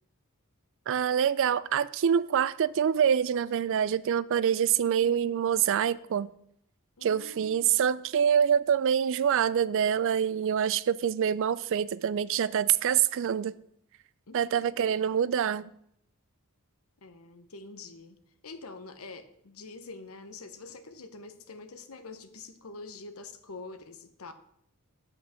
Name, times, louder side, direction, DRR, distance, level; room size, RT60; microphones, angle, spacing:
voice 1, 0.9-6.3 7.0-13.5 14.3-15.7, right 8 dB, 60° right, 0.3 m, -26 dB
voice 2, 7.0-7.9 14.3-15.0 17.0-18.2 18.4-24.3, left 3 dB, 65° left, 0.9 m, -46 dB
8.1 x 5.8 x 6.4 m
head